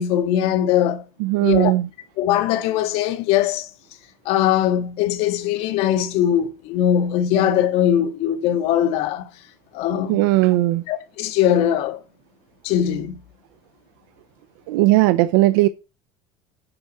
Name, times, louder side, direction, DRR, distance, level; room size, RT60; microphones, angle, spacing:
voice 1, 0.0-1.0 1.4-1.7 2.2-3.7 4.3-9.3 9.7-10.2 10.9-12.0 12.6-13.2, left 10 dB, 60° left, 1.8 m, -20 dB
voice 2, 1.2-1.9 10.1-10.8 14.7-15.7, right 17 dB, 90° right, 0.6 m, -17 dB
9.8 x 4.7 x 7.7 m
cardioid pair, 155°, 11 cm